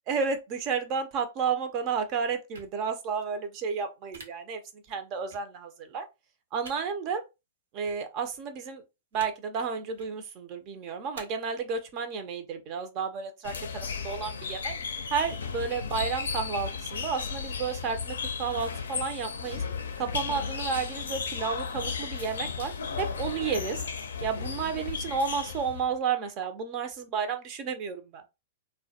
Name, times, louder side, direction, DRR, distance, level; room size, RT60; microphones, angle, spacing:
voice 1, 0.1-6.1 6.5-7.2 7.7-8.8 9.1-14.7 15.1-19.6 20.0-22.7 23.0-23.8 24.2-28.2, right 6 dB, 40° right, 0.5 m, -32 dB
Plastic CD case opening and closing, 2.5-2.7 4.1-4.2 5.3-5.4 6.6-6.8 7.8-7.9 9.1-9.3 9.9-10.1 11.1-11.2, right 3 dB, 75° right, 0.7 m, -46 dB
sound 1, 13.4-25.9, left 5 dB, 75° left, 0.4 m, -35 dB
2.2 x 2.1 x 2.7 m
hypercardioid pair, 110°, 0 cm